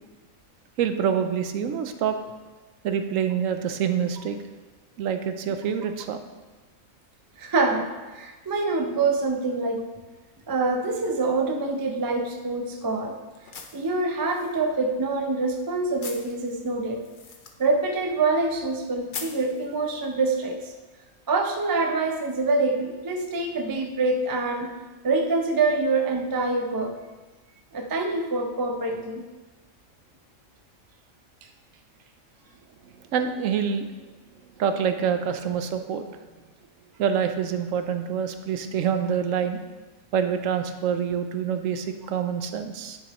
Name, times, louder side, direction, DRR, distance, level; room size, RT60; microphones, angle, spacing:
voice 1, 0.8-2.2 2.8-4.4 5.0-6.2 33.1-33.9 34.6-36.0 37.0-39.6 40.1-43.0, right 7 dB, 75° right, 8 dB, 1.0 m, -26 dB
voice 2, 7.4-9.8 10.5-13.2 13.7-17.0 17.6-20.7 21.3-24.7 25.0-26.9 27.7-29.2, right 3 dB, 35° right, 3 dB, 0.3 m, -25 dB
sound 1, 11.7-20.3, left 5 dB, 50° left, 0.7 m, -45 dB
9.9 x 6.9 x 3.0 m, 1.2 s
omnidirectional pair, 1.4 m